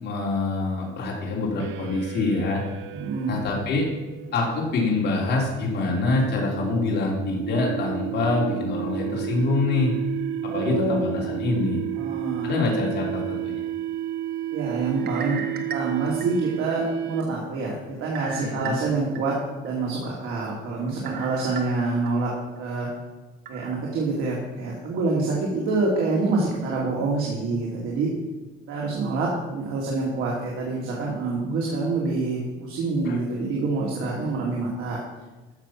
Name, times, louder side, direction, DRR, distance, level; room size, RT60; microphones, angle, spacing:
voice 1, 0.0-2.6 3.3-3.9 4.3-9.9 10.5-11.8 12.4-13.6 18.4-18.7 33.0-33.2, left 3 dB, 50° left, -3 dB, 3.5 m, -25 dB
sound 1, 1.6-17.5, right 12 dB, 65° right, 0.5 m, -32 dB
voice 2, 2.9-3.4 10.5-11.0 12.0-12.5 14.5-15.4 15.7-22.9 23.5-28.1 28.7-35.0, right 3 dB, 80° right, -3 dB, 2.7 m, -26 dB
sound 2, 15.0-16.7 17.2-17.3 18.1-19.2 19.6-19.7 21.1-22.1 22.6-22.7 23.5-23.7, right 5 dB, 50° right, 1.4 m, -37 dB
13.5 x 6.8 x 5.9 m, 1.2 s
cardioid pair, 165°, 21 cm